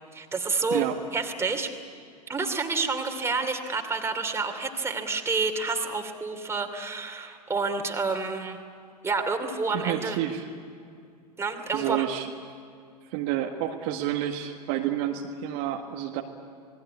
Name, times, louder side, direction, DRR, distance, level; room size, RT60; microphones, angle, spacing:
voice 1, 0.1-0.8 1.1-1.7 2.3-8.6 9.0-10.2 11.4-12.0, right 4 dB, 15° right, 4 dB, 2.8 m, -29 dB
voice 2, 9.7-10.5 11.7-12.3 13.1-16.2, right 12 dB, 45° right, 2 dB, 1.7 m, -29 dB
28.0 x 20.0 x 9.7 m, 2.3 s
figure-of-eight pair, 95°, 21 cm